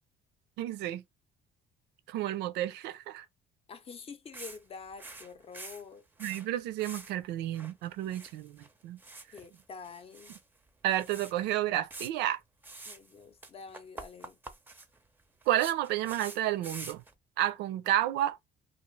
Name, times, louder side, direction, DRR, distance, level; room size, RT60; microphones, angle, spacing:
voice 1, 0.6-1.0 2.1-3.3 6.2-9.0 10.8-12.4 15.5-17.0 17.4-18.5, right 13 dB, 85° right, 0.4 m, -31 dB
voice 2, 3.7-6.0 9.3-10.3 12.8-14.4, left 5 dB, 35° left, 0.6 m, -47 dB
sound 1, 4.3-4.6 4.9-6.5 6.8-7.1 7.4-8.7 9.0-10.4 10.7-10.8 11.0-11.3 11.9-12.1 12.6-13.1 13.4-17.1, right 2 dB, 10° right, 0.5 m, -46 dB
2.4 x 2.4 x 3.1 m
cardioid pair, 110°, 17 cm